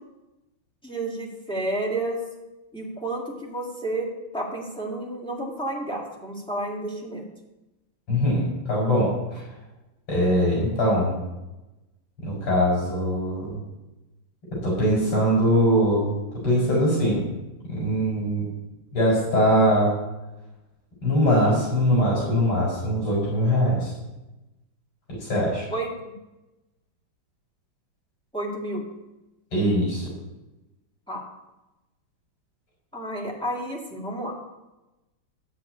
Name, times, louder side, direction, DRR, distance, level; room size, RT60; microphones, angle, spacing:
voice 1, 0.8-2.2 2.7-4.1 4.3-7.2 25.7-25.9 28.3-28.8 31.1-31.2 32.9-34.3, right 1 dB, ahead, -3 dB, 2.0 m, -30 dB
voice 2, 8.1-9.4 10.1-11.1 12.2-13.5 14.6-16.1 16.4-17.3 17.7-18.4 18.9-19.9 21.0-23.9 25.2-25.7 29.5-30.0, equal, 85° left, -5 dB, 4.9 m, -22 dB
12.0 x 5.2 x 8.8 m, 1.0 s
omnidirectional pair, 2.4 m